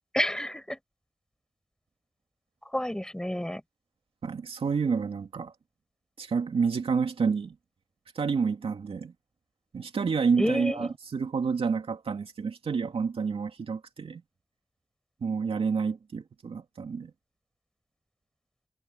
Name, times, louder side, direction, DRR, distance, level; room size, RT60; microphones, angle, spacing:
voice 1, 0.1-0.8 2.7-3.6 10.4-10.9, left 1 dB, 5° left, 7.8 m, -29 dB
voice 2, 4.2-5.5 6.2-7.5 8.1-9.1 9.7-14.2 15.2-17.1, right 5 dB, 75° right, 2.5 m, -29 dB
wide cardioid pair, 90°, 10 cm